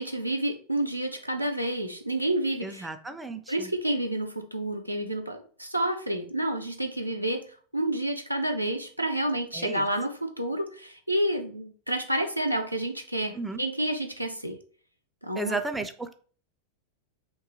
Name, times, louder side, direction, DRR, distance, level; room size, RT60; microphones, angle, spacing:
voice 1, 0.0-2.9 3.5-7.4 7.7-14.6 15.2-15.6, right 1 dB, 90° right, 4 dB, 0.5 m, -29 dB
voice 2, 2.6-3.7 9.5-9.9 13.3-13.6 15.4-16.1, right 3 dB, 5° right, 7 dB, 0.3 m, -34 dB
2.7 x 2.3 x 3.7 m, 0.43 s
figure-of-eight pair, 90°, 0 cm